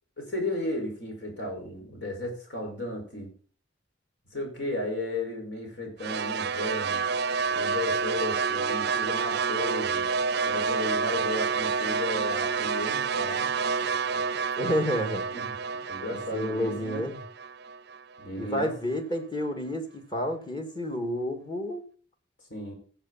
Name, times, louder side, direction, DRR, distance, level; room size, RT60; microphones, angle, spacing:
voice 1, 0.2-3.3 4.3-7.0 7.5-10.1 10.5-13.5 15.3-15.5 15.9-17.1 18.2-18.7 22.5-22.7, left 1 dB, 65° left, 2 dB, 5.4 m, -34 dB
sound 1, 6.0-18.3, right 5 dB, 60° right, 0.5 m, -29 dB
voice 2, 14.6-15.2 16.1-17.2 18.4-21.9, equal, 25° left, 4 dB, 2.2 m, -30 dB
15.0 x 7.5 x 4.2 m, 0.42 s
head